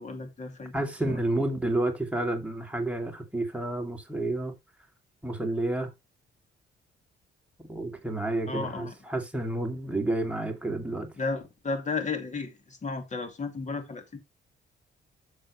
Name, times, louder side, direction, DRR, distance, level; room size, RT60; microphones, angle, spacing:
voice 1, 0.0-0.7 1.1-1.2 8.5-8.9 11.2-14.2, left 4 dB, 35° left, 2.6 m, -33 dB
voice 2, 0.7-4.5 5.2-5.9 7.6-11.1, right 2 dB, 5° right, 2.5 m, -30 dB
10.5 x 6.8 x 3.1 m
cardioid pair, 90°, 20 cm